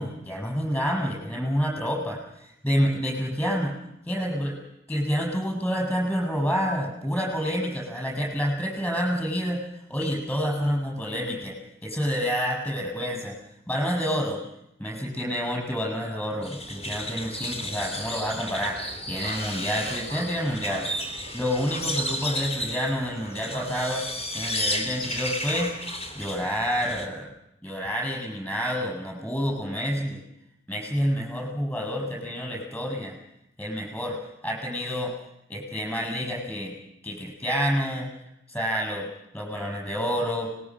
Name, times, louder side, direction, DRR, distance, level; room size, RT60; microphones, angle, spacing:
voice 1, 0.0-3.8 4.1-4.6 4.9-9.6 9.9-13.4 13.7-14.4 14.8-18.8 19.1-20.9 21.3-24.0 24.3-25.7 26.1-27.3 27.6-30.2 30.7-33.1 33.6-35.1 35.5-36.7 37.0-38.1 38.5-39.1 39.3-40.5, equal, 10° left, -1 dB, 7.9 m, -28 dB
sound 1, 16.4-27.1, left 1 dB, 35° left, 3.5 m, -33 dB
25.0 x 21.0 x 6.4 m, 0.81 s
head